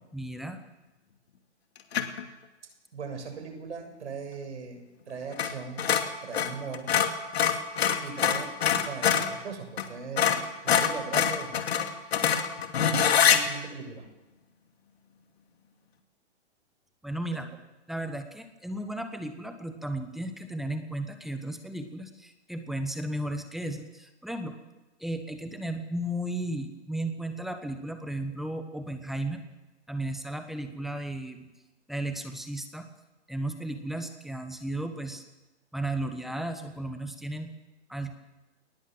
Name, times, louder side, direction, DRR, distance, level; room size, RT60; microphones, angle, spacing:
voice 1, 0.1-0.6 17.0-17.5 17.9-24.6 25.0-29.4 29.9-31.5 31.9-32.8 33.3-35.2 35.7-37.5 37.9-38.2, right 1 dB, ahead, 7 dB, 1.2 m, -34 dB
sound 1, 1.9-2.2 5.3-5.5 5.8-9.3 9.8-9.9 10.2-13.4, left 8 dB, 60° left, 2.6 m, -24 dB
voice 2, 2.9-5.9 6.2-6.9 8.0-10.4 10.6-11.6 12.8-14.1 17.3-17.4, right 5 dB, 75° right, 6 dB, 7.0 m, -39 dB
21.5 x 20.0 x 7.8 m, 1.0 s
hypercardioid pair, 155°, 35 cm